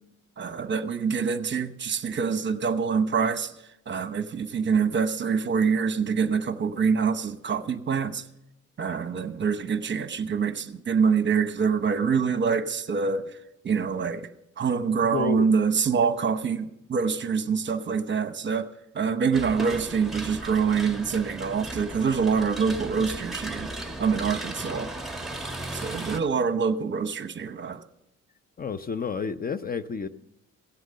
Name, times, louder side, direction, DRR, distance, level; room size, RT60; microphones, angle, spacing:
voice 1, 0.4-3.5 3.9-8.2 8.8-13.3 13.6-14.3 14.6-18.7 18.9-23.7 24.0-24.9 25.7-27.8, right 6 dB, 40° right, 0.9 m, -25 dB
voice 2, 15.1-15.5 28.6-30.1, left 6 dB, 30° left, 0.6 m, -30 dB
sound 1, 19.3-26.2, right 1 dB, ahead, 1.4 m, -36 dB
16.0 x 7.9 x 6.6 m
cardioid pair, 90°, 30 cm